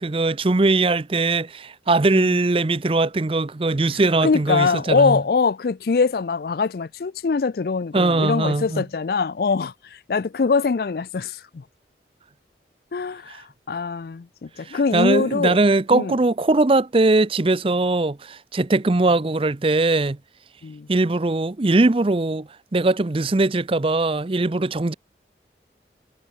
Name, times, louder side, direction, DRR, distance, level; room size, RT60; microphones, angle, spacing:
voice 1, 0.0-5.2 7.9-8.8 13.3-13.4 14.7-20.2 20.9-24.9, right 2 dB, 30° right, 0.6 m, -20 dB
voice 2, 4.2-9.7 10.1-11.6 12.9-15.6 15.9-16.1 20.6-20.9, left 4 dB, 55° left, 0.4 m, -23 dB
head